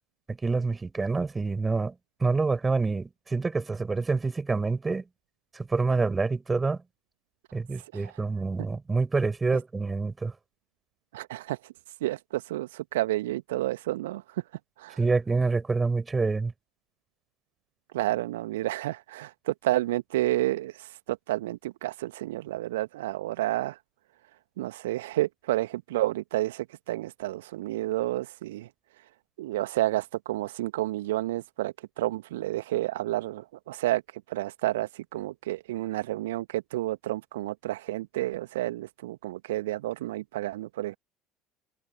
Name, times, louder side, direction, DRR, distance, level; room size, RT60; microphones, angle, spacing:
voice 1, 0.3-2.0 2.2-5.0 5.5-6.8 7.5-10.3 15.0-16.5, right 4 dB, 20° right, 7.0 m, -27 dB
voice 2, 11.1-11.6 12.0-14.2 14.8-15.0 17.9-23.8 24.6-28.7 29.4-34.0 34.3-40.9, right 16 dB, 70° right, 1.6 m, -30 dB
figure-of-eight pair, 60°, 0 cm